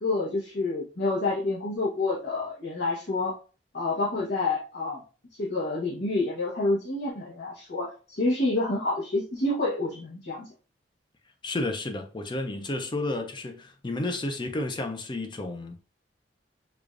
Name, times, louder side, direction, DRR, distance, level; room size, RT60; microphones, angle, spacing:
voice 1, 0.0-3.3 3.7-5.0 5.4-10.5, left 2 dB, 70° left, 1.0 m, -28 dB
voice 2, 11.4-15.8, left 2 dB, 25° left, 0.5 m, -31 dB
4.8 x 2.4 x 2.4 m
head